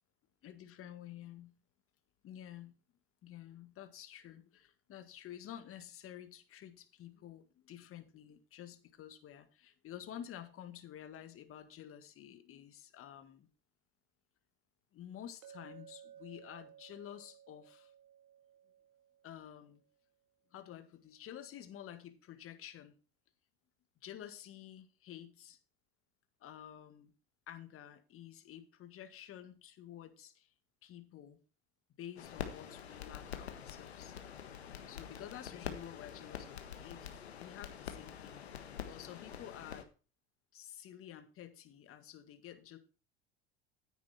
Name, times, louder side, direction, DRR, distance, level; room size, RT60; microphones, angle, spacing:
voice 1, 0.4-1.6 2.2-2.7 3.2-13.5 14.9-17.9 19.2-19.8 20.5-23.0 24.0-25.6 26.4-27.1 27.5-30.5 30.8-31.4 32.0-34.2 34.9-38.4 38.8-39.9 40.5-42.8, left 10 dB, 45° left, 9 dB, 1.9 m, -50 dB
Chink clink, 15.4-19.6, right 9 dB, 55° right, 2.0 m, -57 dB
sound 1, 32.2-39.8, left 8 dB, 90° left, 1.5 m, -46 dB
9.7 x 9.5 x 4.3 m, 0.34 s
hypercardioid pair, 80°, 31 cm